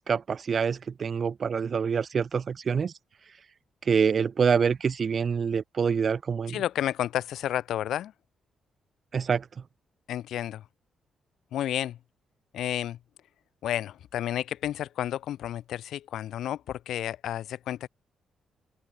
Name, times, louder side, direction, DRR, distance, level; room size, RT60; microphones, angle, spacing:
voice 1, 0.1-2.9 3.9-6.6 9.1-9.4, right 6 dB, 45° right, 2.6 m, -26 dB
voice 2, 6.5-8.1 10.1-10.6 11.5-12.0 12.5-13.0 13.6-17.9, left 11 dB, 85° left, 3.6 m, -31 dB
open air
cardioid pair, 100°, 0 cm